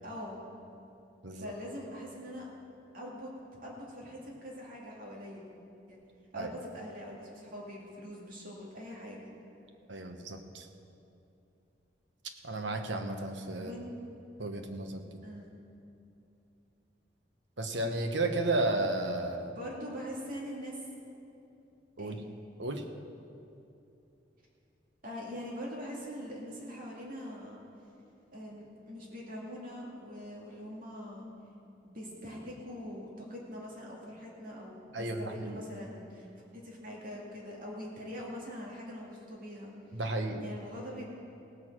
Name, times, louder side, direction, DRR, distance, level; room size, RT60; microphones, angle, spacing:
voice 1, 0.0-0.4 1.3-2.5 2.9-3.3 3.6-5.4 5.9-6.0 6.3-9.3 13.6-13.9 15.2-15.5 19.2-20.8 22.0-22.3 25.0-27.6 28.3-31.3 31.8-36.3 36.5-39.7 40.4-41.1, equal, 50° right, -3 dB, 2.3 m, -43 dB
voice 2, 9.9-10.7 12.4-13.7 14.4-15.0 17.6-19.5 22.0-22.2 22.6-22.8 34.9-35.6 39.9-40.4, right 2 dB, 80° right, 5 dB, 1.1 m, -33 dB
17.0 x 6.3 x 7.5 m, 2.7 s
head